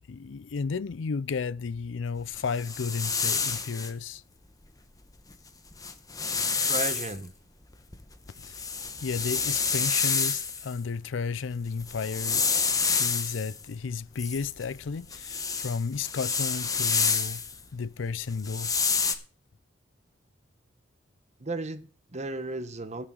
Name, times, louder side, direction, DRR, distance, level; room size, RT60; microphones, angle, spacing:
voice 1, 0.1-4.2 8.4-8.7 9.0-12.4 12.9-17.4 17.7-18.8, left 5 dB, 85° left, 0.5 m, -33 dB
sound 1, 2.3-3.9 5.3-5.4 5.7-7.2 7.7-10.7 11.7-13.6 14.2-17.6 18.3-19.2, left 5 dB, 20° left, 1.2 m, -28 dB
voice 2, 6.6-7.3 21.4-23.1, right 2 dB, 40° right, 1.0 m, -34 dB
18.0 x 6.5 x 3.8 m
head